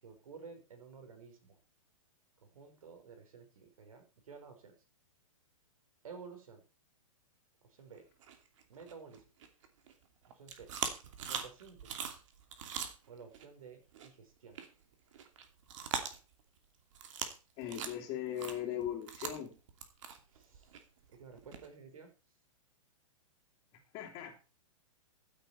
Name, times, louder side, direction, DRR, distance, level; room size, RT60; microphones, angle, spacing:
voice 1, 0.0-1.6 2.4-4.7 6.0-6.6 7.8-8.0 8.7-9.2 10.3-10.7 11.3-11.9 13.1-14.6 20.3-20.7 21.1-22.1, right 5 dB, 75° right, 6 dB, 5.0 m, -52 dB
sound 1, 8.2-9.9 10.2-13.5 13.9-14.1 14.5-14.7 14.9-16.6 16.9-17.4 17.6-21.7, right 7 dB, 60° right, 2.7 m, -41 dB
voice 2, 17.6-19.5 23.9-24.4, left 10 dB, 35° left, -3 dB, 3.0 m, -39 dB
15.5 x 8.9 x 4.4 m, 0.33 s
hypercardioid pair, 130°, 18 cm